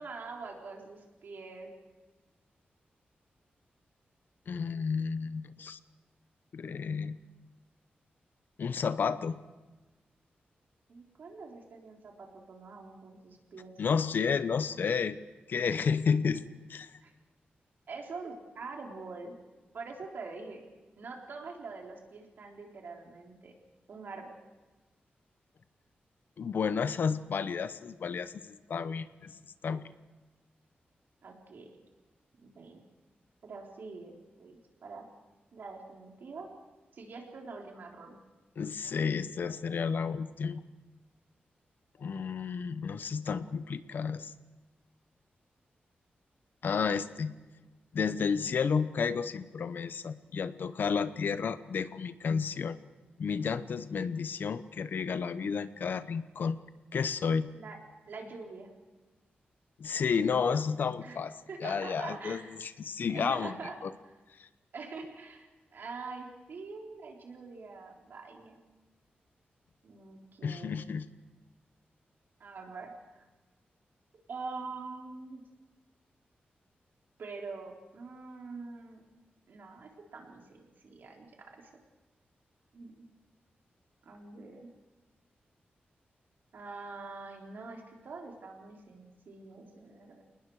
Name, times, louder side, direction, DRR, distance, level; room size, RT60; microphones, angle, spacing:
voice 1, 0.0-1.7 10.9-13.7 17.0-17.1 17.9-19.4 19.7-20.6 21.0-23.5 23.9-24.3 31.2-31.7 32.4-32.8 33.4-35.1 35.5-36.5 36.9-38.2 57.5-57.8 58.1-58.7 61.0-61.2 61.5-62.5 63.1-63.8 64.7-65.5 65.7-68.6 69.8-70.8 72.4-73.3 74.3-75.4 77.2-79.0 79.5-81.7 82.7-83.0 84.0-84.7 86.5-90.2, right 4 dB, 65° right, 1 dB, 3.6 m, -44 dB
voice 2, 4.5-5.8 6.5-7.2 8.6-9.4 13.8-15.2 15.5-16.4 16.7-16.9 26.4-29.4 29.6-29.8 38.6-40.6 42.0-44.3 46.6-47.3 47.9-52.8 53.2-56.6 56.9-57.5 59.8-61.3 61.6-63.5 63.8-63.9 64.4-64.5 70.4-71.0, left 6 dB, 65° left, 13 dB, 0.8 m, -31 dB
29.0 x 19.5 x 4.8 m, 1.2 s
wide cardioid pair, 165°, 4 cm